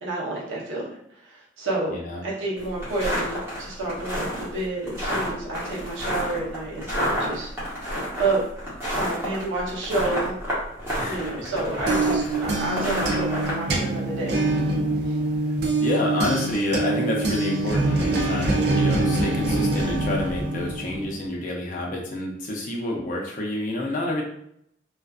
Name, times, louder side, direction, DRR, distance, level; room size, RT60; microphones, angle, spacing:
voice 1, 0.0-1.9 2.2-7.5 8.2-8.4 8.9-10.3 11.0-14.4 15.0-15.2, right 2 dB, 85° right, -4 dB, 0.8 m, -29 dB
voice 2, 1.9-2.2 11.0-11.3 12.3-12.4 15.8-24.2, left 1 dB, 40° left, -2 dB, 0.5 m, -28 dB
sound 1, 2.6-13.5, equal, 15° right, 0.8 m, -29 dB
sound 2, 11.5-21.2, right 2 dB, 55° right, 0.4 m, -25 dB
2.4 x 2.3 x 2.3 m, 0.73 s
head